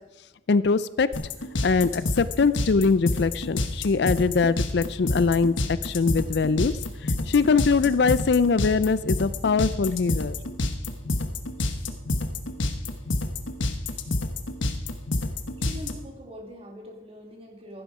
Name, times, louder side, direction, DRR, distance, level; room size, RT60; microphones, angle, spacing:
voice 1, 0.5-1.1 1.6-6.7 7.0-10.4, left 4 dB, 60° left, 16 dB, 0.4 m, -22 dB
sound 1, 1.1-15.9, left 2 dB, 85° left, 1.2 m, -28 dB
voice 2, 15.6-17.8, left 1 dB, 30° right, 1 dB, 2.7 m, -42 dB
15.5 x 11.5 x 4.9 m, 1.1 s
head